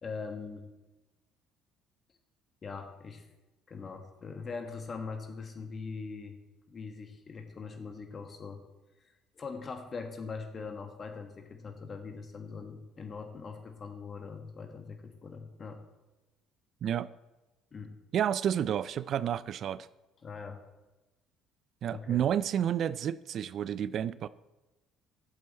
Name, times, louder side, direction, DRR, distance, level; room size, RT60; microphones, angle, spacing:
voice 1, 0.0-0.7 2.6-3.3 3.7-6.4 6.7-8.6 9.3-15.8 17.7-18.0 20.2-20.6 21.9-22.2, left 4 dB, 40° left, 1.6 m, -42 dB
voice 2, 18.1-19.9 21.8-24.3, right 9 dB, 55° right, 0.3 m, -30 dB
11.0 x 7.7 x 4.3 m
hypercardioid pair, 60°, 0 cm